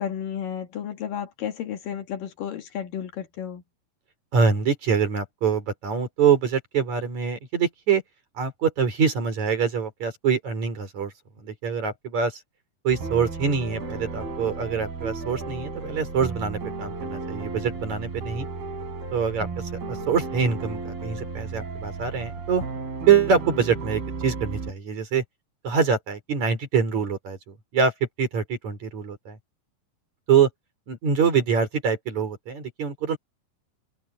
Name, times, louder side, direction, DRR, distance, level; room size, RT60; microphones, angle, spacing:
voice 1, 0.0-3.6, left 9 dB, 65° left, 3.4 m, -32 dB
voice 2, 4.3-8.0 8.4-11.1 11.4-12.4 12.8-18.5 19.1-19.5 19.9-22.6 23.1-25.2 25.6-27.9 28.2-29.4 30.3-30.5 30.9-33.2, right 6 dB, 50° right, 5.7 m, -24 dB
sound 1, 12.9-24.7, right 4 dB, 90° right, 6.2 m, -34 dB
omnidirectional pair, 4.3 m